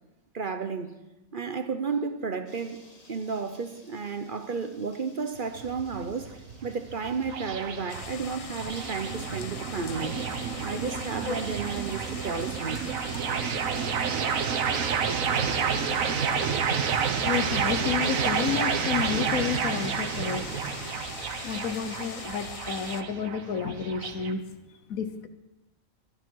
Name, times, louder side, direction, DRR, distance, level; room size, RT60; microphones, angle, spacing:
voice 1, 0.3-0.9 1.3-2.8 3.1-6.3 6.6-10.2 10.6-12.8, right 5 dB, 45° right, 0.9 m, -32 dB
sound 1, 2.5-22.2, left 2 dB, 30° left, 1.5 m, -49 dB
sound 2, 5.4-24.3, right 7 dB, 80° right, 1.4 m, -30 dB
sound 3, 7.9-23.0, left 6 dB, 50° left, 0.4 m, -42 dB
voice 2, 17.2-20.4 21.4-24.4 24.9-25.3, left 7 dB, 90° left, 1.5 m, -30 dB
24.0 x 10.0 x 4.6 m
omnidirectional pair, 1.4 m